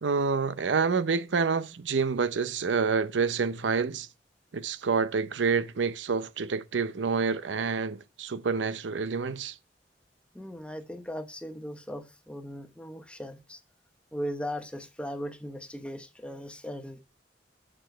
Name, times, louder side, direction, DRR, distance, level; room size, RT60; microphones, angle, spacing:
voice 1, 0.0-4.1 4.5-9.6, right 5 dB, 90° right, 0.6 m, -28 dB
voice 2, 10.3-13.6 14.1-17.0, equal, 5° left, 0.8 m, -38 dB
6.8 x 6.3 x 4.5 m
head